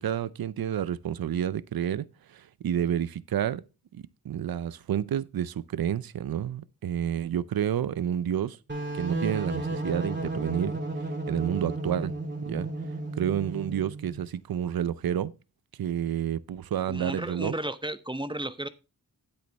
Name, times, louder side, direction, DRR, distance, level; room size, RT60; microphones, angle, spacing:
voice 1, 0.0-3.6 3.9-8.6 8.9-12.1 12.5-12.7 13.2-15.3 15.8-17.5, right 10 dB, 70° right, 0.6 m, -30 dB
sound 1, 8.7-14.2, right 2 dB, 30° right, 3.0 m, -33 dB
voice 2, 16.9-18.7, right 1 dB, 15° right, 0.8 m, -33 dB
9.8 x 8.3 x 3.4 m
wide cardioid pair, 65°, 38 cm